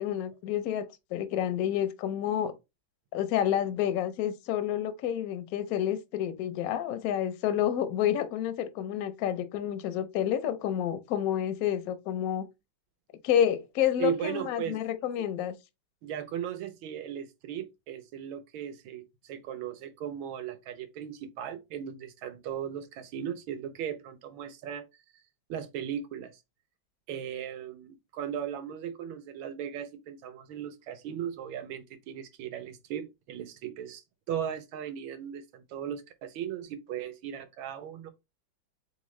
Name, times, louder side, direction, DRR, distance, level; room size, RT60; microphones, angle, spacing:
voice 1, 0.0-2.5 3.1-12.4 13.2-15.5, left 10 dB, 75° left, 0.8 m, -29 dB
voice 2, 14.0-14.8 16.0-24.8 25.5-26.3 27.1-38.1, right 9 dB, 80° right, 1.5 m, -37 dB
3.7 x 3.7 x 3.1 m
omnidirectional pair, 2.2 m